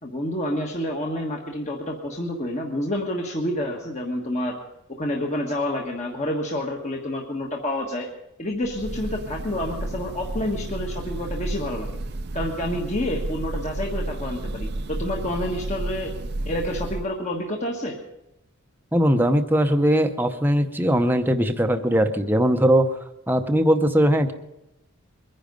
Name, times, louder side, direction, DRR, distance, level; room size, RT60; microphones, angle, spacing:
voice 1, 0.0-4.6 4.9-8.1 8.4-12.0 12.3-16.1 16.4-18.0, left 1 dB, 30° left, 1 dB, 1.4 m, -28 dB
Breathing / Bird, 8.6-17.2, right 2 dB, 50° right, 0.6 m, -32 dB
voice 2, 18.9-22.9 23.3-24.3, equal, 10° right, 6 dB, 0.8 m, -20 dB
22.5 x 10.0 x 5.3 m, 0.89 s
head